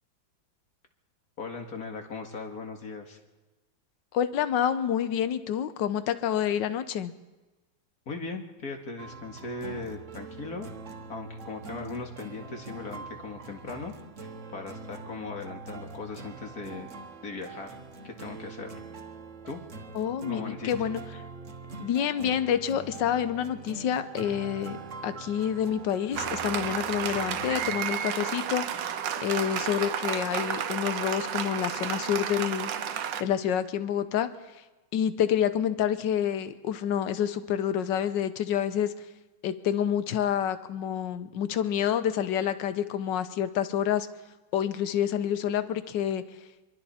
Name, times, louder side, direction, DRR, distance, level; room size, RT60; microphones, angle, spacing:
voice 1, 1.4-3.2 8.1-10.7 11.1-13.9 14.2-16.9 17.2-17.8 18.0-18.8 19.5-19.6 20.3-20.7 27.0-27.2, left 3 dB, 50° left, 3 dB, 2.4 m, -38 dB
voice 2, 4.1-7.1 19.9-21.0 21.8-24.8 25.0-32.7 33.0-34.3 34.9-38.9 39.4-44.1 44.5-46.2, left 9 dB, 65° left, 12 dB, 1.5 m, -28 dB
sound 1, 9.0-27.8, right 3 dB, 40° right, 1.5 m, -43 dB
Applause, 26.2-33.2, right 9 dB, 70° right, 1.5 m, -32 dB
25.5 x 23.0 x 4.4 m, 1.1 s
omnidirectional pair, 2.2 m